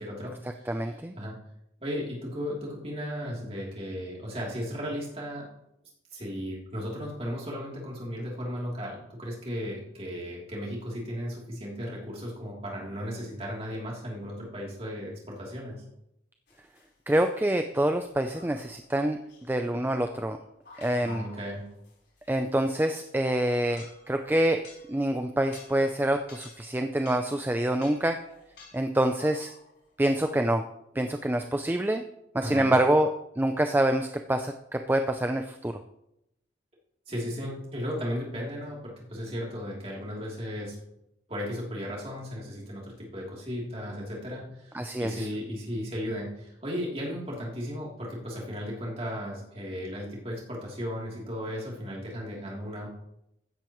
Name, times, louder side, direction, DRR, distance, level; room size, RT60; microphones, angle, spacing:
voice 1, 0.0-1.3 1.8-5.5 6.1-15.8 21.0-21.7 32.4-32.7 37.1-40.8 41.3-52.9, equal, 35° right, -3 dB, 3.1 m, -35 dB
voice 2, 0.7-1.1 17.1-19.2 19.5-20.4 20.8-21.2 22.3-24.6 24.9-28.2 28.7-29.5 30.0-30.6 31.0-32.0 32.3-33.1 33.4-35.8 44.7-45.2, right 1 dB, 10° right, 6 dB, 0.4 m, -26 dB
sound 1, 16.5-16.9 17.2-17.7 18.3-18.8 19.3-25.0 25.3-26.8 27.0-29.8 30.0-30.2, left 3 dB, 75° left, 4.2 m, -51 dB
15.0 x 10.5 x 3.1 m, 0.82 s
head